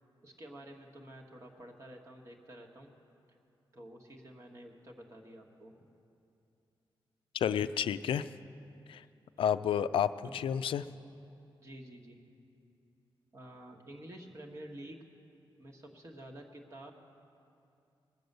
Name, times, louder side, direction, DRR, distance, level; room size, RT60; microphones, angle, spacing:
voice 1, 0.2-2.9 3.3-3.4 3.7-5.9 10.2-10.4 11.6-12.2 13.3-15.0 15.6-16.9, right 1 dB, 35° right, 1 dB, 1.3 m, -50 dB
voice 2, 7.3-8.3 8.9-9.0 9.4-10.8, left 9 dB, 80° left, 13 dB, 0.3 m, -30 dB
20.5 x 7.8 x 6.6 m, 2.6 s
wide cardioid pair, 165°, 9 cm